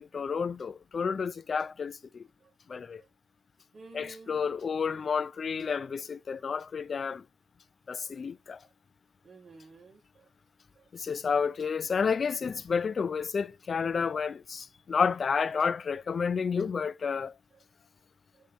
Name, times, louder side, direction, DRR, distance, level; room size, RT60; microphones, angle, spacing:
voice 1, 0.0-2.2 2.7-3.0 3.9-7.2 7.9-8.6 10.9-17.3, left 6 dB, 40° left, 0.4 m, -30 dB
voice 2, 3.7-4.5 9.2-10.3 10.8-10.9 17.5-17.6, right 3 dB, 40° right, 2.0 m, -52 dB
7.3 x 3.7 x 4.0 m
cardioid pair, 90°, 0 cm